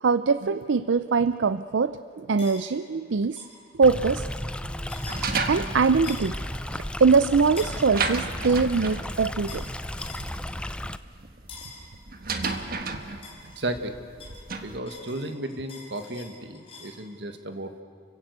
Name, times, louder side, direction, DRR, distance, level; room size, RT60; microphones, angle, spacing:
voice 1, 0.0-3.4 3.8-4.3 5.5-6.3 6.7-9.6, right 5 dB, 90° right, 13 dB, 0.5 m, -22 dB
sound 1, 2.4-2.6 3.4-3.6 4.9-5.2 6.0-6.4 7.6-7.8 9.5-9.7 10.0-10.3 11.5-11.8 12.4-13.8 14.2-17.0, left 4 dB, 30° left, 5.6 m, -44 dB
Stream, 3.8-11.0, left 1 dB, 5° left, 0.5 m, -34 dB
sound 2, 5.1-14.8, right 4 dB, 50° right, 1.4 m, -34 dB
voice 2, 13.4-13.9 14.5-17.8, right 1 dB, 70° right, 7 dB, 1.7 m, -34 dB
30.0 x 16.0 x 8.2 m, 2.3 s
head